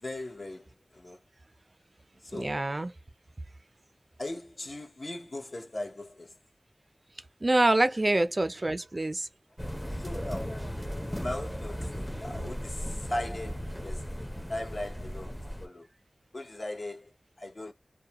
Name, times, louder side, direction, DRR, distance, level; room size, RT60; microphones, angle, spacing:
voice 1, 0.0-1.2 2.2-2.6 4.2-6.4 9.9-10.6 11.1-15.9 16.3-17.1 17.4-17.7, left 1 dB, 60° left, 0.8 m, -39 dB
voice 2, 2.3-2.9 7.4-9.3, right 2 dB, 45° right, 0.4 m, -26 dB
sound 1, 9.6-15.7, equal, 5° left, 0.5 m, -36 dB
2.3 x 2.1 x 2.8 m
wide cardioid pair, 55°, 0 cm